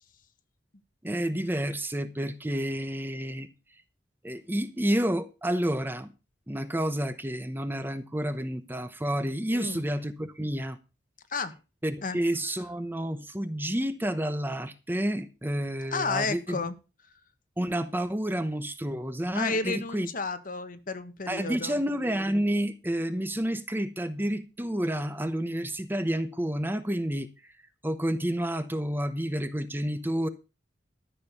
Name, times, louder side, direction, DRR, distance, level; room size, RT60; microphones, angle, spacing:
voice 1, 1.0-3.5 4.2-6.1 6.5-10.8 11.8-16.6 17.6-20.1 21.3-27.3 27.8-30.3, right 1 dB, 10° right, 0.9 m, -30 dB
voice 2, 9.5-9.9 11.3-11.6 12.0-12.2 15.9-16.8 19.3-21.8, left 4 dB, 50° left, 1.5 m, -32 dB
13.5 x 6.8 x 6.8 m
head